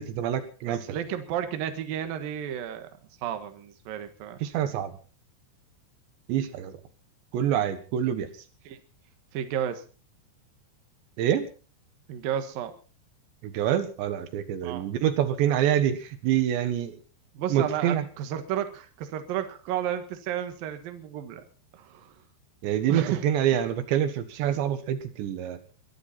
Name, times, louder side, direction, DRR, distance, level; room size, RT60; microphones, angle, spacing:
voice 1, 0.0-0.8 4.4-4.9 6.3-6.8 7.3-8.3 11.2-11.5 13.4-17.0 17.5-18.0 22.6-25.6, right 10 dB, 80° right, 10 dB, 3.6 m, -26 dB
voice 2, 0.7-2.9 3.2-4.4 8.6-8.8 9.3-9.8 12.1-12.7 14.6-14.9 17.3-21.4 21.7-22.2 22.8-23.2 24.5-24.6, right 10 dB, 60° right, 8 dB, 3.0 m, -32 dB
22.5 x 13.0 x 4.3 m, 0.37 s
omnidirectional pair, 5.1 m